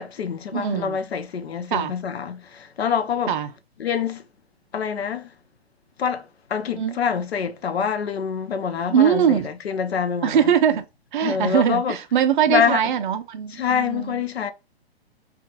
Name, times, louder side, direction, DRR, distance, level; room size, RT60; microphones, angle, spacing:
voice 1, 0.0-3.4 3.8-4.2 4.7-5.3 6.0-10.5 11.2-12.0 12.5-12.8 13.5-14.5, left 7 dB, 75° left, 0.5 m, -26 dB
voice 2, 0.5-1.0 1.7-1.9 3.3-3.5 6.8-7.0 8.9-9.5 10.2-10.8 11.1-14.2, right 8 dB, 50° right, 0.4 m, -21 dB
2.7 x 2.4 x 2.4 m
figure-of-eight pair, 115°, 32 cm